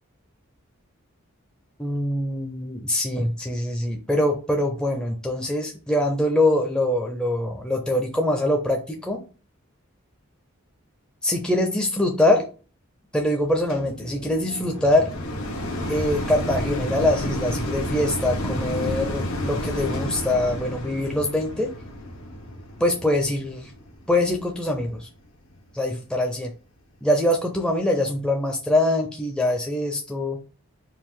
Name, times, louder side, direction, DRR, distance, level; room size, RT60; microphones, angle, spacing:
voice 1, 1.8-9.2 11.2-12.4 13.1-15.1 15.9-21.7 22.8-23.7 24.1-25.1 25.7-26.5 27.0-30.4, left 1 dB, 5° left, 1 dB, 0.5 m, -23 dB
sound 1, 13.7-25.0 25.6-25.7, left 1 dB, 75° left, 1.0 m, -31 dB
4.6 x 2.5 x 3.7 m, 0.35 s
head